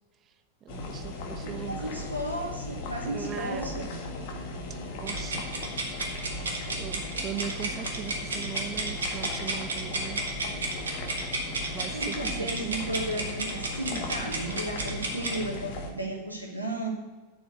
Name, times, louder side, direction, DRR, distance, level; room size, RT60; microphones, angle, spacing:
voice 1, 0.6-1.9 3.0-3.8 5.0-5.4 6.8-10.2 11.7-12.8, right 8 dB, 30° right, 11 dB, 0.7 m, -39 dB
sound 1, 0.7-15.9, left 2 dB, 50° left, 1.9 m, -37 dB
voice 2, 1.4-4.0 11.9-16.9, right 1 dB, 85° right, 1 dB, 2.1 m, -34 dB
sound 2, 5.0-15.4, right 2 dB, 70° right, 2.2 m, -33 dB
8.2 x 7.2 x 8.2 m, 1.2 s
figure-of-eight pair, 90°, 0 cm